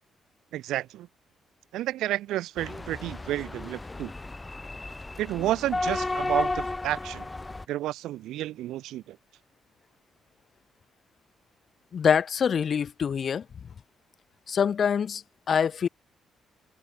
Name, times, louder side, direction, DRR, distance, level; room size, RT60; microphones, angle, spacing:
voice 1, 0.5-1.1 1.7-4.1 5.2-7.3 7.7-9.2, right 14 dB, 85° right, 0.4 m, -31 dB
sound 1, 2.6-7.6, left 2 dB, 20° left, 0.7 m, -33 dB
voice 2, 11.9-13.5 14.5-15.9, left 7 dB, 50° left, 0.4 m, -25 dB
cardioid pair, 90°, 0 cm